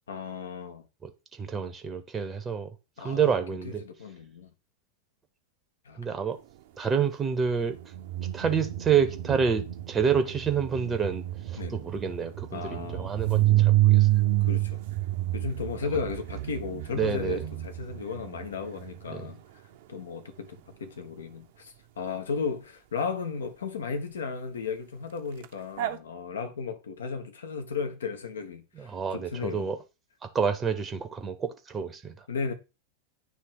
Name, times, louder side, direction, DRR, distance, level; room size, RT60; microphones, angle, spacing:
voice 1, 0.1-0.9 1.4-1.6 3.0-3.4 3.6-4.5 5.8-6.0 11.6-11.8 12.5-13.1 14.4-14.8 15.3-19.4 19.9-29.7 32.3-32.5, left 5 dB, 65° left, 1.0 m, -35 dB
voice 2, 1.4-2.7 3.0-3.8 6.0-6.4 6.8-7.8 8.3-11.2 11.5-14.1 17.0-17.4 19.1-19.3 28.8-29.8 30.2-32.2, right 6 dB, 20° right, 0.8 m, -28 dB
sound 1, 7.7-19.2 25.4-25.5 25.8-26.0, right 16 dB, 50° right, 0.6 m, -28 dB
9.2 x 3.2 x 4.7 m
figure-of-eight pair, 90°, 0 cm